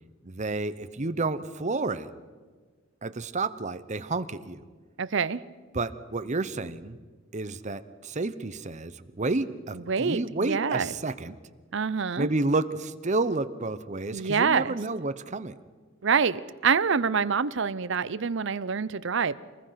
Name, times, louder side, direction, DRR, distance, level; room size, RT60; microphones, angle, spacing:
voice 1, 0.2-2.1 3.0-4.6 5.7-7.0 7.3-11.4 12.2-15.6, right 3 dB, 35° right, 12 dB, 0.9 m, -30 dB
voice 2, 5.0-5.4 9.9-10.9 11.7-12.3 14.1-14.8 16.0-19.4, right 6 dB, 65° right, 16 dB, 0.7 m, -26 dB
25.5 x 20.0 x 5.9 m, 1.5 s
head